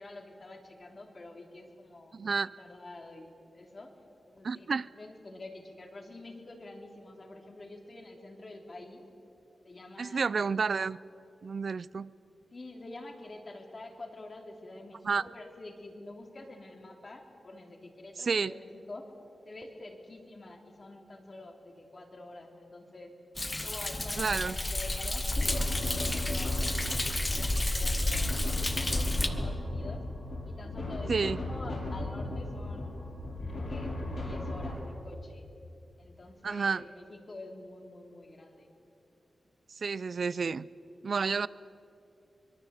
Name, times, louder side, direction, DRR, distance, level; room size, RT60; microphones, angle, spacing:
voice 1, 0.0-4.0 4.3-4.7 5.0-9.0 9.6-10.3 12.5-19.1 19.4-23.1 23.6-26.5 26.8-30.0 30.4-32.9 33.5-33.9 34.2-35.5 36.0-38.7, left 2 dB, 35° left, 3 dB, 3.0 m, -47 dB
voice 2, 2.1-2.5 4.4-4.9 10.0-11.0 11.4-12.1 15.0-15.2 18.2-18.5 24.2-24.6 31.1-31.4 36.4-36.8 39.8-40.7 41.0-41.5, right 5 dB, 55° right, 20 dB, 0.5 m, -30 dB
Thunder, 23.4-29.3, left 2 dB, 20° left, 1.3 m, -31 dB
sound 1, 25.3-34.7, left 1 dB, 60° left, 7.6 m, -36 dB
24.0 x 23.0 x 8.1 m, 2.8 s
wide cardioid pair, 135°, 0 cm